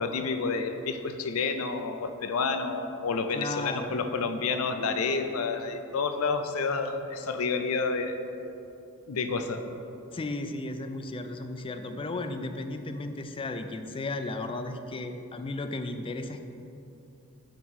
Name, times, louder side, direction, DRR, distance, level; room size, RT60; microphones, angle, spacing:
voice 1, 0.0-8.2 9.1-9.6, left 4 dB, 75° left, 7 dB, 0.5 m, -29 dB
voice 2, 3.3-4.0 10.1-16.4, left 2 dB, 25° left, 7 dB, 0.4 m, -35 dB
9.0 x 3.0 x 6.2 m, 2.8 s
head